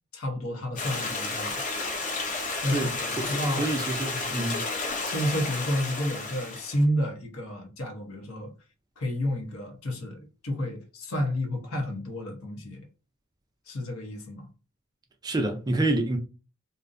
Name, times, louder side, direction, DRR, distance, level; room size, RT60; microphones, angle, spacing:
voice 1, 0.1-1.6 2.6-3.7 4.1-4.5 5.0-8.5 9.0-12.9 13.7-14.5, equal, 70° left, 0.8 m, -31 dB
Stream, 0.8-6.8, left 3 dB, 35° left, 0.6 m, -32 dB
voice 2, 2.7-4.7 15.2-16.2, right 2 dB, 20° right, 0.3 m, -28 dB
2.5 x 2.1 x 2.5 m
head